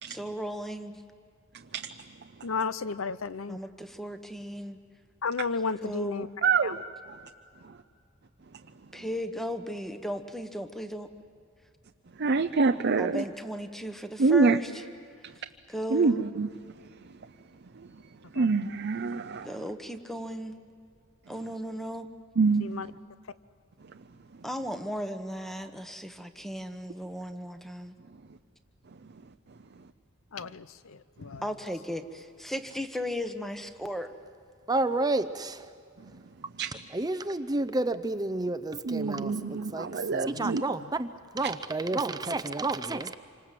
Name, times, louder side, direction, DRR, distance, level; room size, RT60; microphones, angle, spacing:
voice 1, 0.1-1.0 3.5-4.8 5.8-6.3 8.9-11.1 13.0-14.9 15.7-16.2 19.4-20.6 21.3-22.1 24.4-27.9 31.4-34.1, equal, ahead, 8 dB, 1.2 m, -36 dB
voice 2, 2.4-3.6 5.2-6.3 6.6-6.8 18.3-18.5 22.6-22.9 30.3-31.4 40.3-40.9, left 4 dB, 80° left, 15 dB, 0.7 m, -33 dB
voice 3, 6.4-6.8 12.2-13.2 14.2-14.6 15.9-16.5 18.4-19.5 22.4-22.7 36.6-36.7 38.9-40.6, right 4 dB, 55° right, 6 dB, 0.6 m, -25 dB
voice 4, 34.7-35.7 36.6-41.1 41.3-43.1, right 2 dB, 20° right, 11 dB, 0.7 m, -30 dB
27.0 x 25.5 x 7.6 m, 2.3 s
head